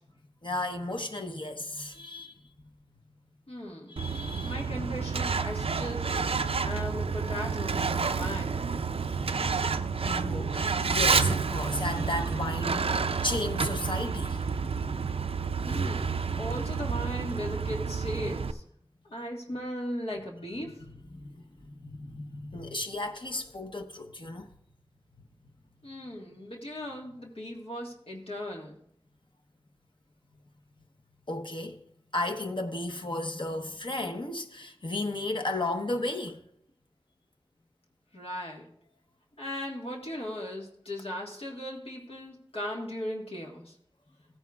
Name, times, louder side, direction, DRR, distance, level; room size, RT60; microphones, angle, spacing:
voice 1, 0.4-2.4 3.9-4.6 10.0-14.4 21.1-24.5 31.3-31.8 32.1-36.4, left 2 dB, 55° left, 1.0 m, -34 dB
voice 2, 3.5-4.0 4.4-6.3 6.6-8.6 15.6-16.1 16.4-18.6 19.0-20.7 25.8-28.8 38.1-38.7 39.4-43.7, equal, 85° left, 1.6 m, -37 dB
Truck, 4.0-18.5, right 5 dB, 80° right, 0.4 m, -29 dB
15.5 x 9.1 x 2.4 m
wide cardioid pair, 40°, 10 cm